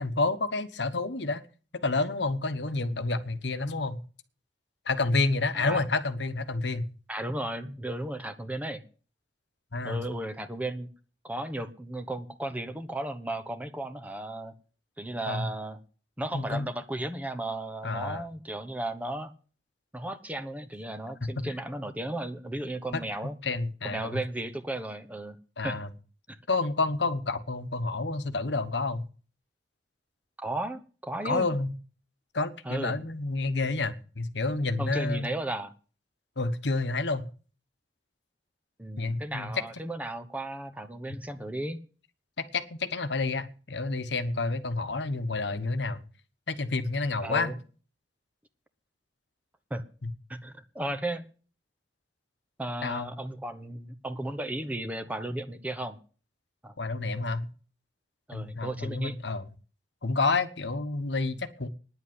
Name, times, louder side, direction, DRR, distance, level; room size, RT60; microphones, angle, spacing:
voice 1, 0.0-1.4 1.8-4.0 4.8-6.9 9.7-10.0 15.3-15.5 16.3-16.7 17.8-18.2 21.4-21.5 22.9-23.0 23.4-24.2 25.6-25.9 26.5-29.0 31.2-31.7 32.3-35.3 36.4-37.3 39.0-39.6 42.4-46.0 46.5-47.5 50.0-50.1 52.8-53.1 56.8-57.5 58.3-59.4 60.0-61.7, left 3 dB, 70° left, 1.2 m, -29 dB
voice 2, 7.1-8.8 9.8-10.9 11.2-14.5 15.0-15.8 16.2-19.3 19.9-23.3 23.8-25.4 25.6-25.8 26.3-26.4 30.4-31.5 32.6-33.0 34.8-35.7 38.8-41.8 47.2-47.6 49.7-49.8 50.3-51.2 52.6-56.0 56.6-56.7 58.3-59.2, right 1 dB, 10° right, 1.0 m, -35 dB
10.0 x 7.7 x 9.6 m
head